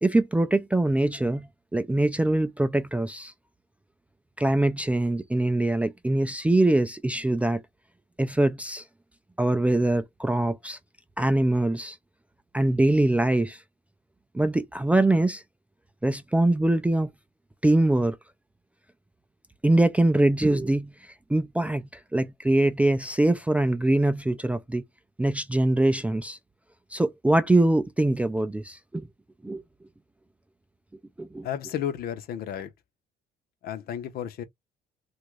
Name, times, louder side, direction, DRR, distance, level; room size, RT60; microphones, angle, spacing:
voice 1, 0.0-3.3 4.4-7.6 8.2-8.8 9.4-10.8 11.2-12.0 12.5-13.6 14.3-15.4 16.0-17.1 17.6-18.2 19.6-20.9 21.3-24.8 25.2-26.4 26.9-29.1 29.4-29.6 31.2-31.5, right 1 dB, 10° right, 0.3 m, -23 dB
voice 2, 31.4-32.7 33.6-34.4, left 9 dB, 65° left, 0.7 m, -32 dB
2.9 x 2.5 x 3.0 m
cardioid pair, 110°, 17 cm